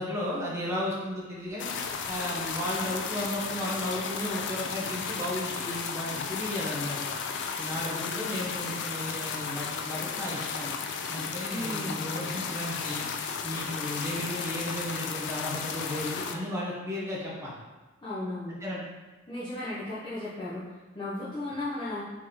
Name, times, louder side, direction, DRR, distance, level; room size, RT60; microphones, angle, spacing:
voice 1, 0.0-1.7 2.1-7.1 7.6-10.7 11.1-13.0 13.4-17.5 18.6-18.8, left 1 dB, 15° right, -5 dB, 0.9 m, -34 dB
sound 1, 1.6-16.4, left 6 dB, 55° left, 0.4 m, -34 dB
voice 2, 11.5-12.0 18.0-18.6 19.3-22.0, left 1 dB, 20° left, -11 dB, 0.8 m, -35 dB
4.1 x 3.0 x 3.7 m, 1.2 s
head